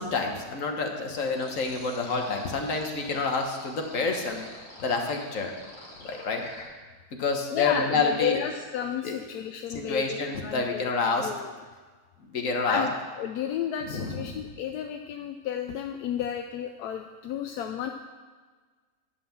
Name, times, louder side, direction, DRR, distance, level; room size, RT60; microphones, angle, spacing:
voice 1, 0.0-4.4 4.8-5.5 6.0-6.4 7.1-8.4 9.0-9.1 9.7-11.3 12.3-12.9 13.9-14.3, left 4 dB, 60° left, 3 dB, 1.6 m, -28 dB
sound 1, 1.3-6.6, left 1 dB, 40° left, 2.1 m, -46 dB
voice 2, 7.5-11.5 12.7-17.9, left 8 dB, 80° left, 5 dB, 1.1 m, -32 dB
11.0 x 5.7 x 7.1 m, 1.4 s
omnidirectional pair, 1.6 m